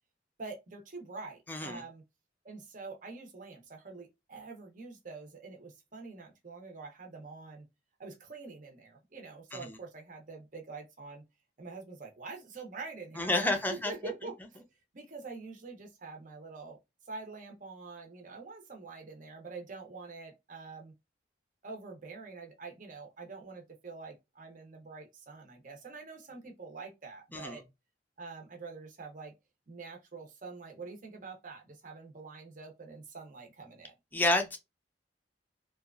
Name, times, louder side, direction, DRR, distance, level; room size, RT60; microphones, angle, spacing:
voice 1, 0.4-2.0 2.4-7.7 8.0-11.2 11.6-14.6 14.9-16.8 17.1-20.9 21.6-27.6 28.2-29.3 29.7-33.9, right 4 dB, 45° right, 0.7 m, -46 dB
voice 2, 1.5-1.8 9.5-9.8 13.2-13.9 27.3-27.6 34.1-34.6, left 2 dB, 10° left, 0.5 m, -29 dB
2.8 x 2.3 x 2.3 m
head